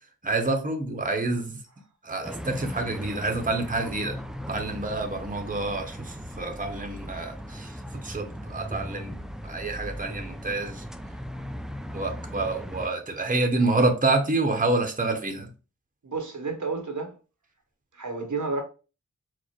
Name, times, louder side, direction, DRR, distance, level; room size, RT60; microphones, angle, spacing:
voice 1, 0.2-1.5 2.0-4.2 4.5-7.7 8.0-10.8 11.9-15.5, right 2 dB, 25° right, 0.9 m, -28 dB
sound 1, 2.2-12.9, equal, ahead, 0.4 m, -38 dB
voice 2, 16.0-17.1 17.9-18.6, right 4 dB, 70° right, 1.0 m, -31 dB
4.7 x 2.1 x 4.3 m
wide cardioid pair, 45°, 31 cm